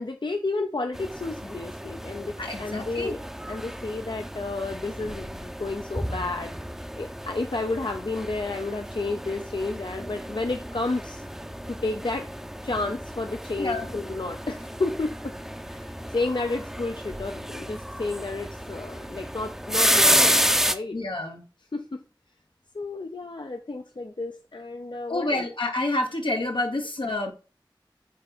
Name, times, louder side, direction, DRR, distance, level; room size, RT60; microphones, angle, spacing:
voice 1, 0.0-3.2 3.5-6.5 7.0-11.2 11.7-12.3 12.6-15.3 15.6-20.4 20.7-21.0 21.7-22.0 22.7-25.5, left 3 dB, 70° left, 0.6 m, -31 dB
sound 1, 0.9-20.7, equal, 5° right, 0.5 m, -30 dB
voice 2, 2.4-3.1 13.6-13.9 20.9-21.4 25.1-27.3, left 2 dB, 90° left, 1.1 m, -28 dB
6.0 x 4.0 x 4.3 m
wide cardioid pair, 40°, 8 cm